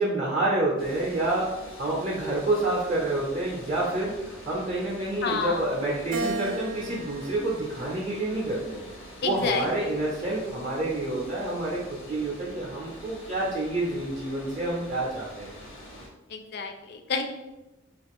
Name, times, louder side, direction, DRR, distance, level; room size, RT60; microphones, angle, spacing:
voice 1, 0.0-1.5 1.8-8.8 9.2-15.5, right 2 dB, 35° right, -5 dB, 0.5 m, -28 dB
sound 1, 0.8-16.1, equal, 85° left, 0.8 m, -45 dB
voice 2, 5.2-5.7 9.2-9.7 16.3-17.2, left 4 dB, 55° left, 5 dB, 0.3 m, -29 dB
Keyboard (musical), 6.1-8.6 9.2-10.4, right 1 dB, 90° right, 0.4 m, -37 dB
2.4 x 2.4 x 3.5 m, 1.0 s
head